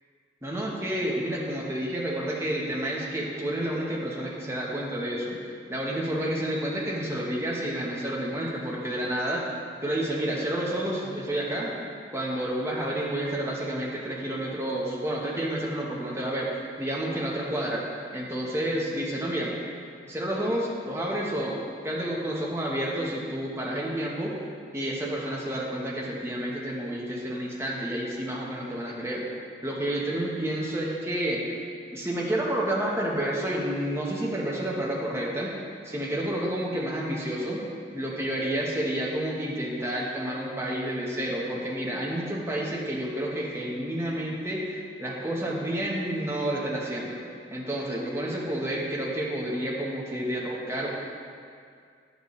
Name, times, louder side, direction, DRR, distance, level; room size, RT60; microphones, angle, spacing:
voice 1, 0.4-5.4 5.7-9.5 9.8-11.7 12.1-17.8 18.1-19.6 20.1-21.6 21.8-24.3 24.7-29.2 29.6-31.6 31.9-35.5 35.8-37.6 37.9-47.2 47.5-50.9, right 1 dB, 15° right, -4 dB, 1.0 m, -30 dB
9.7 x 8.1 x 3.1 m, 2.2 s
head